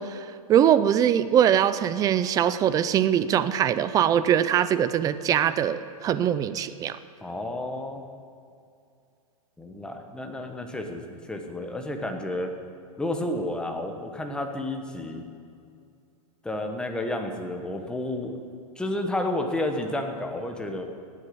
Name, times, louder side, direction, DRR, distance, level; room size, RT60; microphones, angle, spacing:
voice 1, 0.0-7.0, right 9 dB, 20° right, 13 dB, 0.4 m, -22 dB
voice 2, 7.2-8.0 9.6-12.5 13.0-15.2 16.4-18.4 18.8-20.8, left 1 dB, 5° left, 3 dB, 1.2 m, -31 dB
18.5 x 8.4 x 6.9 m, 2.4 s
hypercardioid pair, 140°, 19 cm